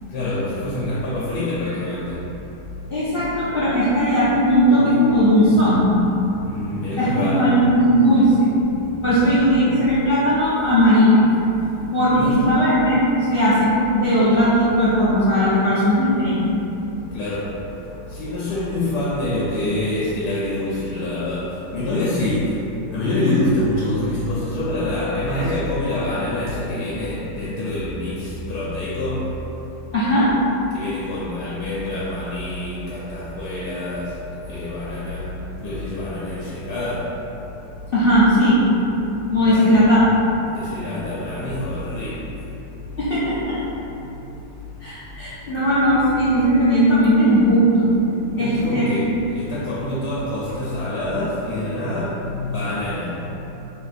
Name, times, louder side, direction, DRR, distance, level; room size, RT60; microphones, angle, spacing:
voice 1, 0.1-2.2 5.6-9.1 9.3-9.4 12.1-12.4 17.1-17.5 18.2-22.5 22.9-29.2 30.7-34.1 34.4-35.2 35.6-37.1 39.5-39.8 40.4-42.2 48.4-53.3, left 1 dB, 75° left, -7 dB, 1.2 m, -26 dB
voice 2, 2.9-5.9 7.0-8.5 9.0-11.2 11.9-16.4 29.9-30.3 37.9-38.6 39.3-40.1 43.0-43.6 44.8-47.9 48.4-48.9, equal, 55° left, -11 dB, 0.6 m, -17 dB
4.4 x 3.1 x 2.5 m, 3.0 s
omnidirectional pair, 1.9 m